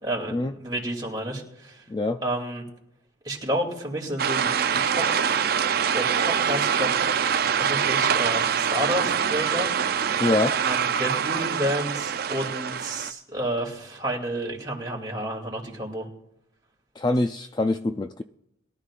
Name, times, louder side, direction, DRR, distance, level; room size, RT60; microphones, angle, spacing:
voice 1, 0.0-1.8 2.2-2.6 3.2-5.1 5.9-6.9 7.5-9.7 10.6-16.1, right 1 dB, 20° right, 2.7 m, -30 dB
voice 2, 1.9-2.2 10.2-10.6 17.0-18.2, left 2 dB, 20° left, 0.3 m, -24 dB
sound 1, 4.2-13.1, right 7 dB, 50° right, 0.4 m, -24 dB
22.0 x 12.5 x 2.5 m
head